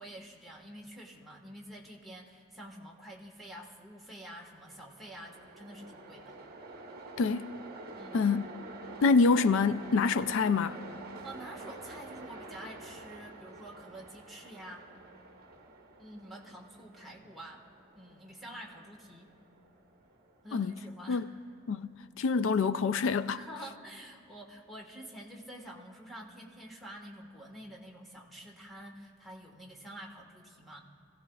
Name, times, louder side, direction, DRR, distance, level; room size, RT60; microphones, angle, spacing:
voice 1, 0.0-6.4 8.0-8.3 11.2-14.9 16.0-17.6 18.0-19.3 20.4-21.2 23.3-30.8, right 1 dB, ahead, 1.4 m, -48 dB
Train, 4.4-21.6, right 2 dB, 45° right, 1.1 m, -49 dB
voice 2, 7.2-7.5 8.1-8.5 9.0-10.8 20.5-20.7 21.1-21.3 21.7-23.4, left 4 dB, 60° left, 0.3 m, -26 dB
26.0 x 15.5 x 2.3 m
head